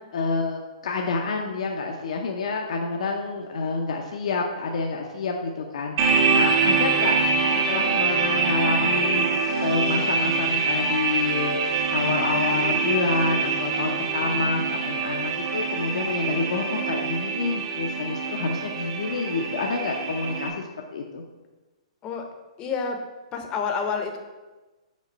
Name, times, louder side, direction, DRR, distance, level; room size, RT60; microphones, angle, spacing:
voice 1, 0.1-7.2 7.7-11.6 11.9-21.2, left 4 dB, 70° left, 2 dB, 0.6 m, -28 dB
sound 1, 6.0-20.5, right 4 dB, 45° right, 0.9 m, -24 dB
voice 2, 22.6-23.0 23.3-24.2, left 5 dB, 25° left, 4 dB, 0.7 m, -28 dB
5.2 x 3.7 x 5.3 m, 1.2 s
hypercardioid pair, 150°, 4 cm